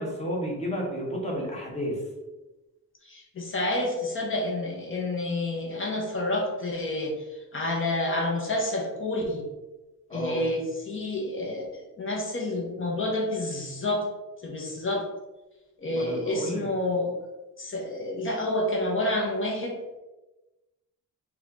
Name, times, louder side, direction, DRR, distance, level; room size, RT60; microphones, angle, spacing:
voice 1, 0.0-2.0 10.1-10.5 15.9-16.7, equal, 20° left, -3 dB, 1.1 m, -31 dB
voice 2, 3.1-7.1 7.5-9.4 10.1-10.6 10.9-14.0 14.4-15.0 15.8-17.1 17.6-19.7, left 1 dB, 40° left, -1 dB, 0.8 m, -29 dB
4.2 x 2.3 x 3.7 m, 1.1 s
wide cardioid pair, 145°, 32 cm